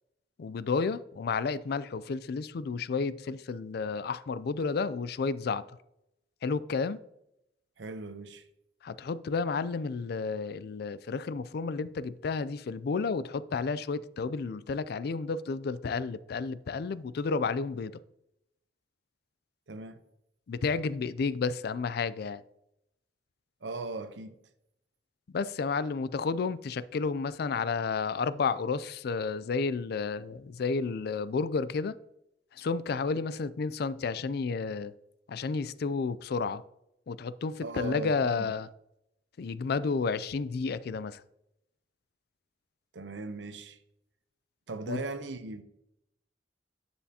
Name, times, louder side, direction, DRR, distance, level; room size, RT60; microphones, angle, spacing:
voice 1, 0.4-5.6 6.4-7.0 8.8-17.9 20.5-22.4 25.3-32.0 32.5-34.9 35.3-36.6 37.1-38.7 39.4-41.2 44.9-45.0, left 4 dB, 60° left, 0.4 m, -31 dB
voice 2, 7.8-8.4 19.7-20.0 23.6-24.3 37.6-38.5 42.9-43.8 44.7-45.6, right 3 dB, 85° right, 0.7 m, -38 dB
10.0 x 7.1 x 2.8 m
head